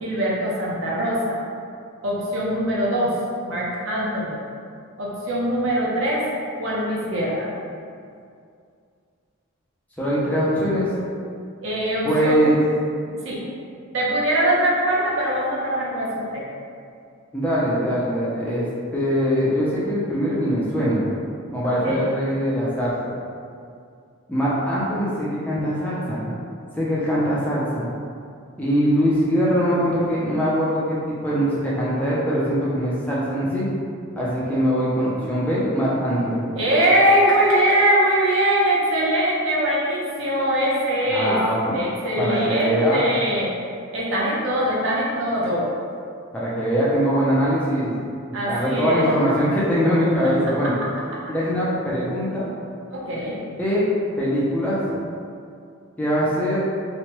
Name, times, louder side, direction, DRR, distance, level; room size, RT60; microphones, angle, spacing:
voice 1, 0.0-1.3 2.0-3.2 3.5-4.4 5.0-6.3 6.6-7.5 11.6-12.4 13.2-13.4 13.9-16.4 21.7-22.0 36.6-41.4 41.7-43.5 43.9-45.7 48.3-49.1 52.9-53.4, right 1 dB, 60° right, -5 dB, 0.6 m, -22 dB
voice 2, 10.0-10.9 12.0-12.6 17.3-18.7 18.9-21.1 21.5-23.1 24.3-26.4 26.8-27.9 28.6-33.7 34.2-36.5 41.1-41.8 42.2-43.0 46.3-47.9 48.4-50.7 51.3-52.5 53.6-53.8 54.2-55.0 56.0-56.6, equal, 5° left, -8 dB, 0.4 m, -22 dB
3.0 x 2.2 x 2.9 m, 2.3 s
head